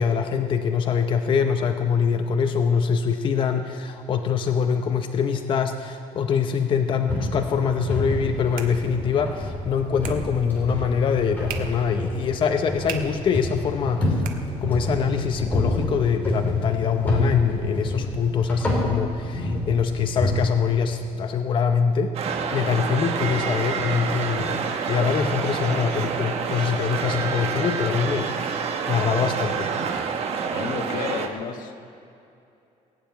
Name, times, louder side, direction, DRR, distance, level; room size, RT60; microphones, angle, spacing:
voice 1, 0.0-14.2 14.6-22.1 22.5-29.7, left 6 dB, 35° left, 6 dB, 0.7 m, -24 dB
sound 1, 7.1-20.3, left 1 dB, 10° left, 4.0 m, -28 dB
sound 2, 8.0-15.1, right 7 dB, 85° right, 1.4 m, -42 dB
sound 3, 22.1-31.3, right 6 dB, 45° right, 1.2 m, -27 dB
voice 2, 30.5-31.8, left 6 dB, 75° left, 5 dB, 1.4 m, -32 dB
19.0 x 7.3 x 9.2 m, 2.7 s
cardioid pair, 160°, 14 cm